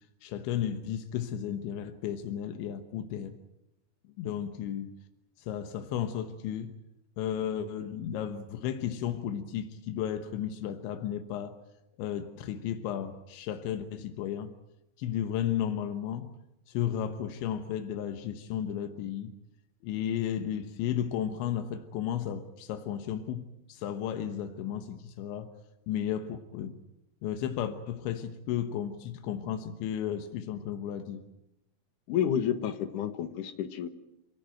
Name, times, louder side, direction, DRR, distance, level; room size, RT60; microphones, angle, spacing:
voice 1, 0.2-3.4 4.2-5.0 5.4-6.7 7.2-11.6 12.0-14.5 15.0-16.3 16.7-19.3 19.8-25.5 25.9-26.8 27.2-31.2, left 9 dB, 85° left, 8 dB, 3.5 m, -34 dB
voice 2, 32.1-33.9, left 9 dB, 65° left, 10 dB, 2.3 m, -30 dB
27.5 x 18.0 x 9.1 m, 0.91 s
omnidirectional pair, 5.1 m